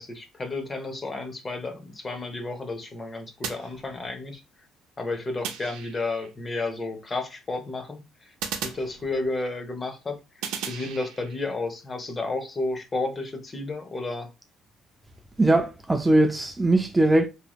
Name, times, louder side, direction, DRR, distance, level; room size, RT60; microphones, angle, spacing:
voice 1, 0.0-4.4 5.0-8.3 8.6-14.3, left 2 dB, 25° left, 0.7 m, -32 dB
sound 1, 3.4-4.4 5.4-6.3 8.4-9.5 10.4-11.5, right 7 dB, 85° right, 0.5 m, -36 dB
voice 2, 15.4-17.3, right 2 dB, 15° right, 0.3 m, -20 dB
3.0 x 2.7 x 2.3 m
cardioid pair, 100°, 0 cm